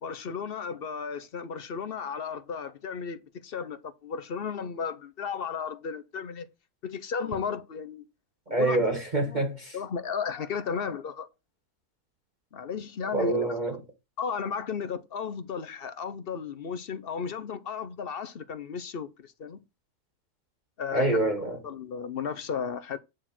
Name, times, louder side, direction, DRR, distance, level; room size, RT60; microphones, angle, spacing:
voice 1, 0.0-6.5 6.8-8.0 8.5-8.8 9.2-9.4 9.7-11.3 12.5-13.4 14.2-19.6 20.8-21.1 21.6-23.0, left 6 dB, 50° left, 0.8 m, -34 dB
voice 2, 8.5-9.8 13.1-13.8 20.9-21.6, right 2 dB, 30° right, 1.6 m, -26 dB
9.1 x 4.4 x 5.9 m
omnidirectional pair, 1.6 m